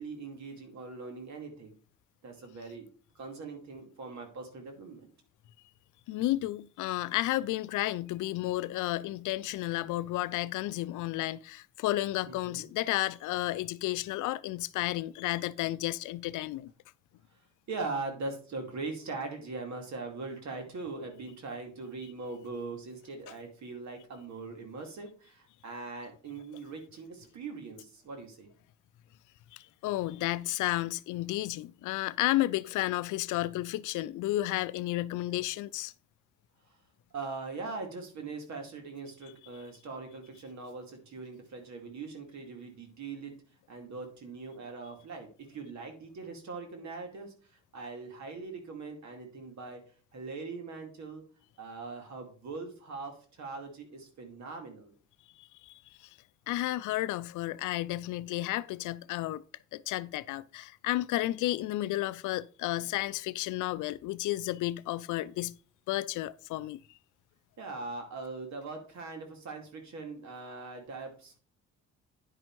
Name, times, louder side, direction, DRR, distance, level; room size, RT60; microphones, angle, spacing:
voice 1, 0.0-1.7 2.2-2.9 3.1-5.1 12.2-12.7 17.7-28.5 36.7-36.8 37.1-43.3 43.7-49.8 50.1-51.2 51.6-54.9 62.8-62.9 67.6-71.4, right 3 dB, 65° right, 2.4 m, -41 dB
voice 2, 6.1-16.7 29.5-35.9 55.4-56.1 56.5-59.4 59.7-65.6 65.9-66.8, left 16 dB, 80° left, 0.5 m, -32 dB
9.9 x 5.1 x 4.6 m
cardioid pair, 90°, 30 cm